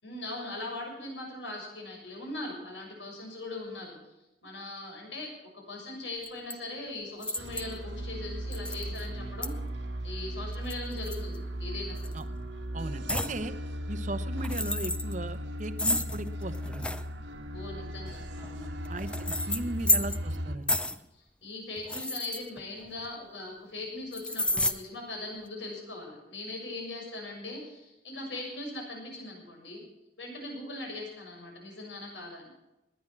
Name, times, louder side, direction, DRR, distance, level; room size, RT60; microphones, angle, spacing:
voice 1, 0.0-4.0 4.4-5.3 5.7-9.5 10.0-12.1 13.5-13.6 17.5-18.7 19.4-19.7 21.1-29.8 30.2-32.5, left 2 dB, 85° left, 0 dB, 7.0 m, -40 dB
sound 1, 6.2-6.5 7.2-7.8 8.5-9.0 9.4-9.5 10.5-11.6 12.0-12.2 13.1-13.4 14.3-15.1 15.8-17.0 18.1-20.4 20.7-21.0 21.8-23.1 24.1-24.7, left 1 dB, 5° left, 0.6 m, -31 dB
sound 2, 7.4-20.6, equal, 80° right, 1.6 m, -37 dB
voice 2, 12.7-13.5 13.9-16.9 18.9-20.8, right 2 dB, 40° right, 11 dB, 0.9 m, -37 dB
19.5 x 10.0 x 6.1 m, 0.94 s
head